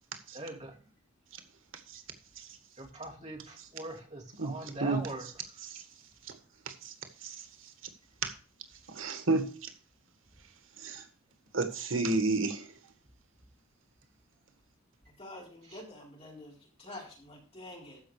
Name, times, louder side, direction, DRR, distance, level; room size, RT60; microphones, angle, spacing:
voice 1, 0.3-0.7 2.8-5.3 15.7-15.8, right 1 dB, 35° right, 3.0 m, -42 dB
voice 2, 9.0-9.5 10.8-11.0 11.5-12.6, right 3 dB, 85° right, 1.7 m, -29 dB
voice 3, 15.2-18.0, left 1 dB, 30° left, 4.4 m, -47 dB
14.0 x 5.6 x 4.9 m
head